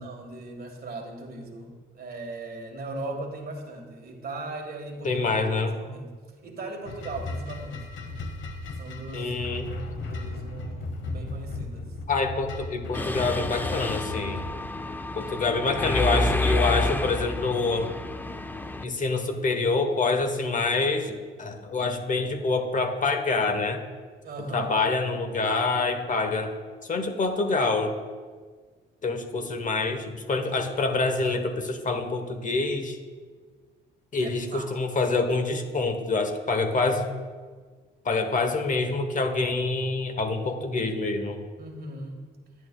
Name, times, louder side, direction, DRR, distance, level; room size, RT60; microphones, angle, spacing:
voice 1, 0.0-5.4 5.8-6.1 6.4-7.8 8.8-9.3 9.7-11.9 24.2-24.8 34.2-34.7 41.6-42.2, right 2 dB, 50° right, 3 dB, 1.5 m, -38 dB
voice 2, 5.0-5.8 9.1-9.7 12.1-14.4 15.1-17.9 18.8-23.8 24.5-26.5 26.9-27.9 29.0-33.0 34.1-37.1 38.0-41.4, left 3 dB, 40° left, 6 dB, 1.0 m, -26 dB
sound 1, 6.9-14.5, left 2 dB, 70° left, 1.0 m, -36 dB
Mechanisms, 12.9-18.8, left 2 dB, 10° left, 0.4 m, -29 dB
11.0 x 8.6 x 2.2 m, 1.5 s
cardioid pair, 90°, 20 cm